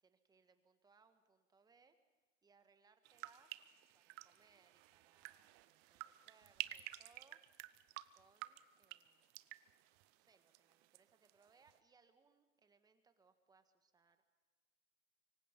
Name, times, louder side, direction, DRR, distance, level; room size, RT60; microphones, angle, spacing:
voice 1, 0.0-2.0 2.4-3.6 3.9-7.4 8.1-9.3 10.1-14.2, right 5 dB, 10° right, 9 dB, 1.5 m, -72 dB
sound 1, 3.0-11.0 11.3-11.8, right 18 dB, 25° right, 0.7 m, -52 dB
24.5 x 24.0 x 5.3 m, 1.3 s
hypercardioid pair, 135°, 39 cm